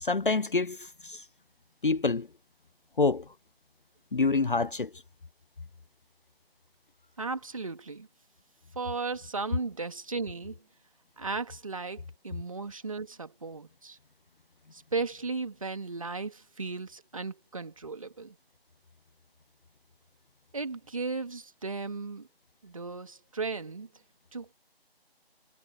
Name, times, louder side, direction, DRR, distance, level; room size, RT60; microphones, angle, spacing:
voice 1, 0.0-1.2 1.8-2.3 3.0-3.3 4.1-5.0, left 3 dB, 55° left, 0.6 m, -27 dB
voice 2, 7.2-8.1 8.7-10.6 11.2-14.0 14.7-18.4 20.5-22.3 22.6-23.9 24.3-24.5, right 4 dB, 35° right, 2.5 m, -36 dB
figure-of-eight pair, 170°, 31 cm